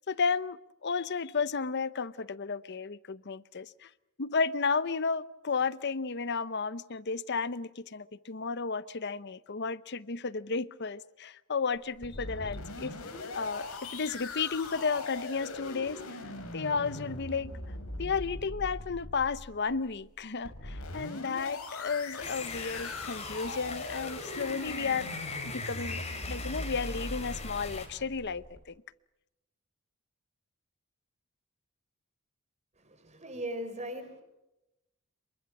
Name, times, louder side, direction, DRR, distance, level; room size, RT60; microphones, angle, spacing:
voice 1, 0.0-3.9 4.2-12.9 13.3-16.2 16.5-17.6 18.0-25.1 25.4-28.8, left 5 dB, 50° left, 0.8 m, -33 dB
sound 1, 11.7-28.6, left 2 dB, 85° left, 4.9 m, -41 dB
sound 2, 22.2-27.9, left 4 dB, 30° left, 4.4 m, -40 dB
voice 2, 32.8-34.2, right 1 dB, 30° right, 4.4 m, -39 dB
27.5 x 23.5 x 6.0 m
head